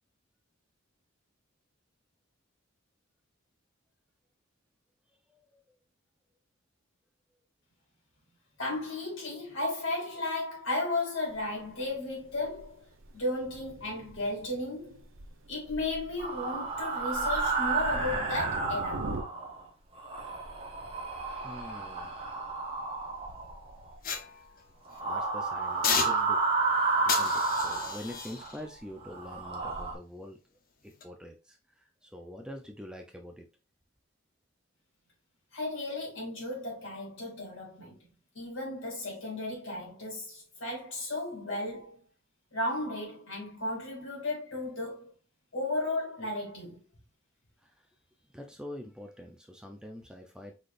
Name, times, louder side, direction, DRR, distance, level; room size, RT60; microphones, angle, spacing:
voice 1, 8.6-12.8 13.1-15.0 15.5-19.1 35.5-38.0 38.3-42.0 42.5-45.1 45.5-46.8, left 2 dB, 65° left, 2.8 m, -34 dB
Thunder, 11.3-19.2, right 2 dB, 70° right, 0.8 m, -43 dB
sound 1, 16.2-19.6 20.0-24.0 24.9-28.5 29.0-29.9, right 4 dB, 30° right, 1.2 m, -31 dB
voice 2, 20.2-20.5 21.3-22.3 25.0-26.4 27.0-30.4 30.8-33.5 47.6-47.7 48.3-50.5, left 1 dB, 5° right, 0.5 m, -45 dB
sound 2, 24.0-25.0 25.8-26.6 27.1-30.3 30.8-31.0, left 6 dB, 45° left, 0.7 m, -35 dB
4.9 x 4.0 x 2.5 m
head